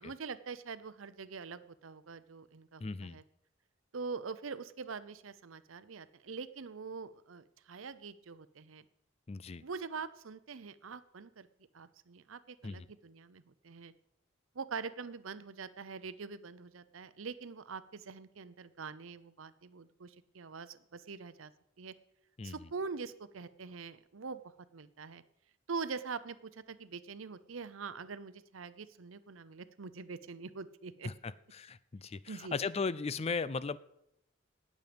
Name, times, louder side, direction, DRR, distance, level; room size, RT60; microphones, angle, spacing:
voice 1, 0.0-3.2 3.9-8.8 9.6-11.5 11.7-13.9 14.5-21.5 21.8-21.9 22.4-24.4 24.7-25.2 25.7-31.1 32.3-32.6, right 5 dB, 85° right, 15 dB, 0.7 m, -44 dB
voice 2, 2.8-3.2 9.3-9.6 12.6-12.9 22.4-22.6 31.0-33.8, left 4 dB, 30° left, 17 dB, 0.4 m, -37 dB
18.5 x 7.5 x 5.2 m, 0.79 s
head